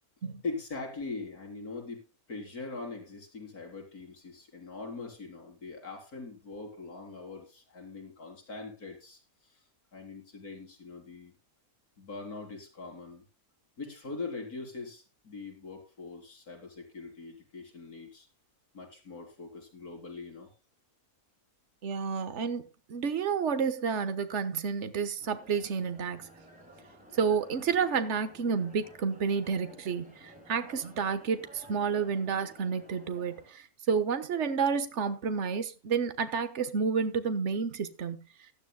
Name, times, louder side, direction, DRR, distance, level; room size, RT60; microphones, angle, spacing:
voice 1, 0.4-9.6 9.9-11.4 12.0-13.2 13.8-18.3 18.7-20.5, left 3 dB, 80° left, 4.4 m, -42 dB
voice 2, 21.8-22.6 22.9-26.3 27.1-38.2, right 6 dB, 55° right, 1.5 m, -30 dB
sound 1, 25.2-33.5, right 1 dB, 5° right, 7.0 m, -54 dB
17.0 x 12.0 x 2.2 m
omnidirectional pair, 1.6 m